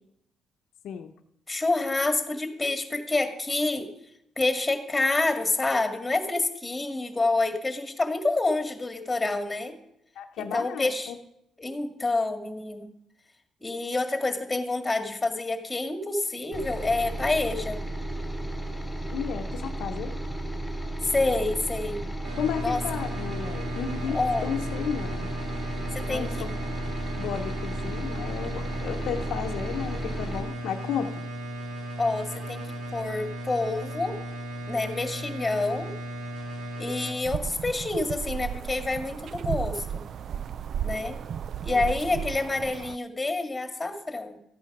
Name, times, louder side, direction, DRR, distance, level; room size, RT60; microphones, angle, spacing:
voice 1, 1.5-3.9 4.4-9.8 10.4-11.1 11.6-12.9 13.6-17.8 21.0-22.1 22.6-22.8 24.1-24.5 25.9-26.5 32.0-32.6 32.9-34.2 34.7-35.9 36.8-40.0 40.8-41.2 41.6-44.4, left 2 dB, 15° left, 6 dB, 2.0 m, -28 dB
voice 2, 10.2-11.2 19.1-20.2 22.4-25.3 26.1-26.6 27.2-31.1 41.7-41.8, left 8 dB, 80° left, 5 dB, 0.9 m, -33 dB
sound 1, 16.5-30.4, right 1 dB, ahead, 3.4 m, -34 dB
sound 2, 22.2-37.1, right 1 dB, 90° right, 3.3 m, -36 dB
sound 3, 37.3-43.0, right 8 dB, 60° right, 0.4 m, -34 dB
14.0 x 8.7 x 6.0 m, 0.79 s
cardioid pair, 90°, 0 cm